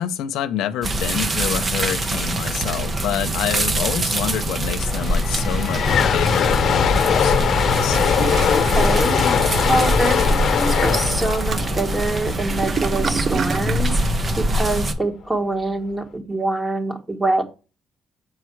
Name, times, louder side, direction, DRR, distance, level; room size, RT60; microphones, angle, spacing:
voice 1, 0.0-8.0, left 10 dB, 90° left, 0.6 m, -27 dB
sound 1, 0.8-14.9, right 1 dB, 35° right, 1.0 m, -24 dB
sound 2, 4.7-12.9, left 7 dB, 60° left, 0.9 m, -21 dB
Toilet flush, 7.7-13.9, right 6 dB, 50° right, 0.4 m, -30 dB
voice 2, 8.5-9.2 9.7-14.0 14.4-17.4, right 2 dB, 20° right, 1.7 m, -24 dB
7.4 x 5.0 x 4.6 m
cardioid pair, 90°, 0 cm